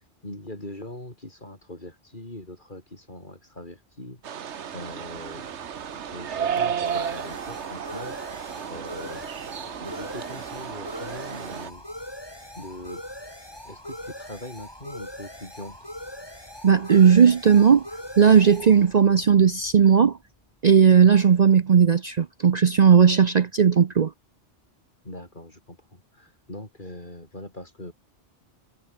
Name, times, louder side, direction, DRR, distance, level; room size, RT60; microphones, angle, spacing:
voice 1, 0.2-5.5 5.9-9.3 9.8-11.8 12.6-13.0 13.6-15.8 25.0-27.9, left 1 dB, 45° left, 5.5 m, -41 dB
sound 1, 4.2-11.7, right 8 dB, 80° right, 1.3 m, -33 dB
sound 2, 4.9-20.3, left 1 dB, 20° left, 6.1 m, -41 dB
voice 2, 16.6-17.9 18.2-20.2 20.6-24.1, right 7 dB, 45° right, 0.7 m, -16 dB
omnidirectional pair, 1.2 m